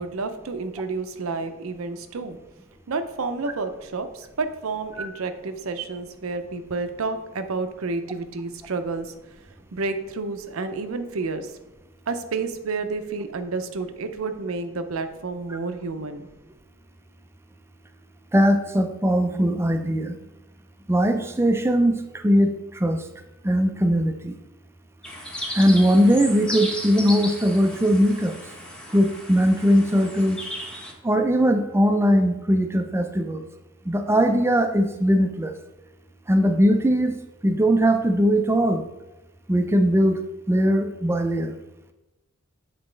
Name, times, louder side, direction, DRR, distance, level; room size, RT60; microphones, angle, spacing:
voice 1, 0.0-2.4 2.9-9.1 9.7-11.5 12.1-16.3, right 3 dB, 65° right, 9 dB, 0.5 m, -30 dB
voice 2, 18.3-20.2 20.9-23.0 23.4-24.3 25.5-28.4 28.9-30.4 31.0-33.4 33.9-35.5 36.3-37.1 37.4-38.8 39.5-41.5, equal, 10° right, 6 dB, 0.4 m, -20 dB
sound 1, 25.0-30.9, equal, 5° left, 0.9 m, -35 dB
8.1 x 4.1 x 3.2 m, 0.99 s
head